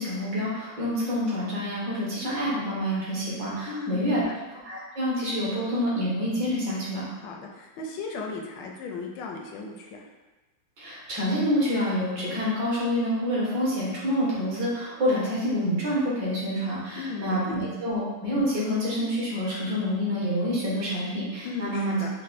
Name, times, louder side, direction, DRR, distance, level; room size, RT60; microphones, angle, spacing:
voice 1, 0.0-4.2 4.7-7.1 10.8-22.0, equal, 60° right, -6 dB, 1.8 m, -27 dB
voice 2, 3.7-4.3 7.1-10.1 16.9-17.6 21.4-22.1, left 4 dB, 75° left, 0 dB, 1.1 m, -36 dB
5.3 x 2.1 x 4.1 m, 1.1 s
omnidirectional pair, 2.4 m